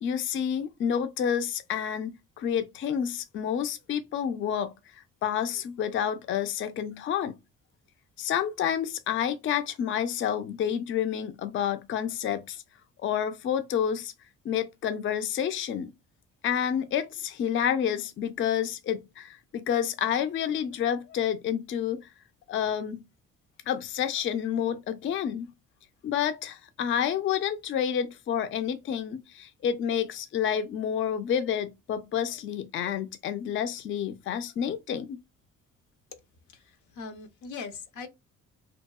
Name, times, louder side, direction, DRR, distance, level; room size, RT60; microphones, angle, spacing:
voice 1, 0.0-7.4 8.2-12.6 13.0-14.1 14.4-15.9 16.4-22.1 22.5-23.0 23.7-25.5 26.0-35.2, left 9 dB, 40° left, 0.4 m, -29 dB
voice 2, 36.5-38.1, left 5 dB, 80° left, 0.6 m, -41 dB
2.8 x 2.2 x 2.2 m
cardioid pair, 90°, 30 cm